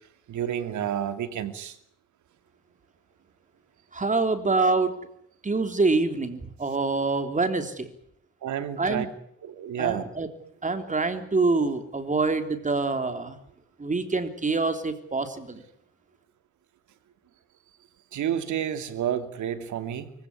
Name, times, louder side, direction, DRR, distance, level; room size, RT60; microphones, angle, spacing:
voice 1, 0.3-1.8 8.4-9.1 9.4-10.0 18.1-20.1, right 10 dB, 75° right, 10 dB, 2.7 m, -30 dB
voice 2, 3.9-4.9 5.4-7.9 8.8-9.1 9.8-10.3 10.6-13.4 13.8-15.6, right 3 dB, 25° right, 8 dB, 3.5 m, -25 dB
24.5 x 16.0 x 9.8 m, 0.71 s
cardioid pair, 90°, 30 cm